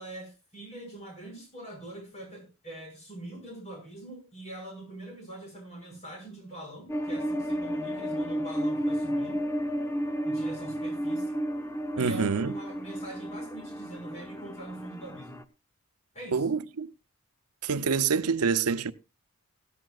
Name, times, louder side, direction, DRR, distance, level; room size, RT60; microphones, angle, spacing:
voice 1, 0.0-9.4 10.2-11.4 12.0-15.4 16.1-16.5, right 1 dB, 30° left, 6.2 m, -43 dB
sound 1, 6.9-15.4, equal, 10° left, 0.7 m, -32 dB
voice 2, 12.0-12.5 16.3-16.9 17.6-18.9, right 5 dB, 85° right, 0.7 m, -26 dB
17.0 x 14.0 x 2.4 m
head